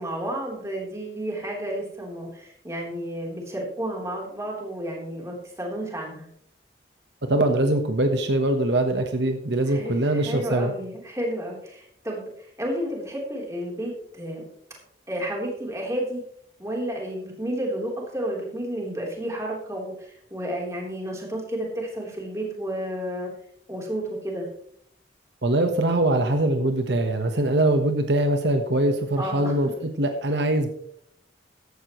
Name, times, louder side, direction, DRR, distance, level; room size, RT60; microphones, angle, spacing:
voice 1, 0.0-6.3 9.7-12.3 12.6-14.5 15.1-16.2 16.6-23.3 23.7-24.5 29.2-29.5, right 1 dB, 15° right, -2 dB, 3.6 m, -31 dB
voice 2, 7.3-10.7 25.4-30.7, right 1 dB, 70° right, 6 dB, 1.2 m, -22 dB
15.0 x 11.5 x 3.1 m, 0.66 s
head